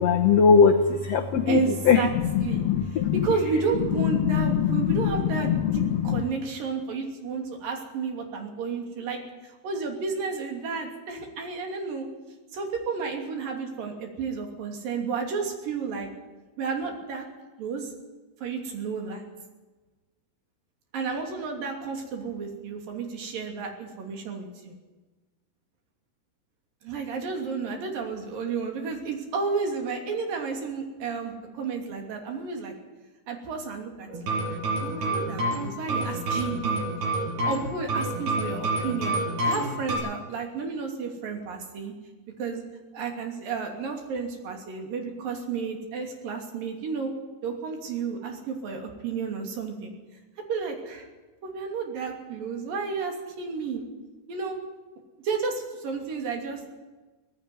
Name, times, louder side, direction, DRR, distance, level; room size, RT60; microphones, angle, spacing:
voice 1, 0.0-1.6 1.9-2.0 2.3-3.1 4.2-6.2, left 6 dB, 85° left, 4 dB, 1.4 m, -21 dB
voice 2, 1.5-2.1 2.4-2.6 2.9-12.1 12.5-16.1 16.6-17.3 17.6-17.9 18.4-19.2 20.9-24.7 26.8-32.7 33.3-36.8 37.5-41.9 42.4-42.6 42.9-47.1 47.4-49.9 50.5-51.1 51.4-53.8 54.3-54.6 55.2-56.7, right 5 dB, 60° right, 3 dB, 4.5 m, -32 dB
sound 1, 34.1-39.9, right 2 dB, 75° right, 8.5 m, -28 dB
18.5 x 15.0 x 9.4 m, 1.2 s
omnidirectional pair, 4.6 m